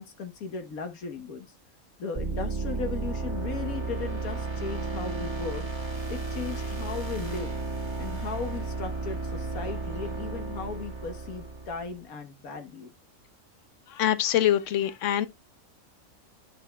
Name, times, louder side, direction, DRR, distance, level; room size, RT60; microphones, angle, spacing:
voice 1, 0.0-1.5 2.0-5.7 6.1-7.5 8.0-12.9, left 5 dB, 80° left, 1.6 m, -36 dB
sound 1, 2.1-12.0, right 3 dB, 20° right, 1.6 m, -33 dB
voice 2, 13.9-15.3, left 11 dB, 65° left, 1.0 m, -24 dB
10.0 x 6.0 x 2.2 m
omnidirectional pair, 1.5 m